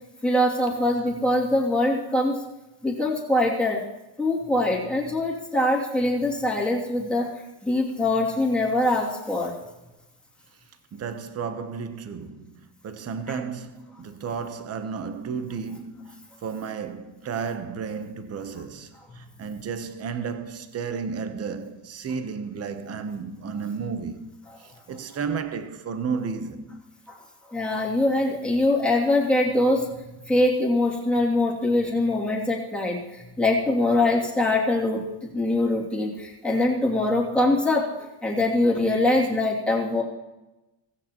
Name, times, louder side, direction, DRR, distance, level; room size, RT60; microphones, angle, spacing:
voice 1, 0.2-2.4 2.8-3.8 4.2-7.3 7.6-9.6 13.3-13.4 27.5-29.9 30.3-37.9 38.2-40.0, left 1 dB, ahead, 2.6 m, -23 dB
voice 2, 10.9-26.8, right 5 dB, 35° right, 0.9 m, -33 dB
16.5 x 15.5 x 3.0 m
cardioid pair, 155°, 45 cm